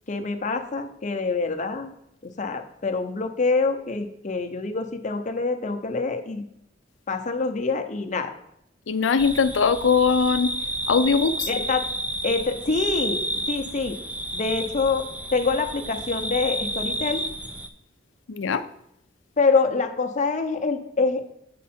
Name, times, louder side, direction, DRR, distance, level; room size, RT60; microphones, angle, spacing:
voice 1, 0.1-1.9 2.2-6.4 7.1-8.3 11.5-11.8 12.2-14.0 14.3-17.3 19.4-21.2, left 4 dB, 40° left, 6 dB, 0.7 m, -25 dB
voice 2, 8.9-10.5 10.9-11.5 18.3-18.6, left 5 dB, 85° left, 12 dB, 0.5 m, -21 dB
sound 1, 9.2-17.7, right 1 dB, 10° right, 0.4 m, -31 dB
8.4 x 4.7 x 4.3 m, 0.78 s
head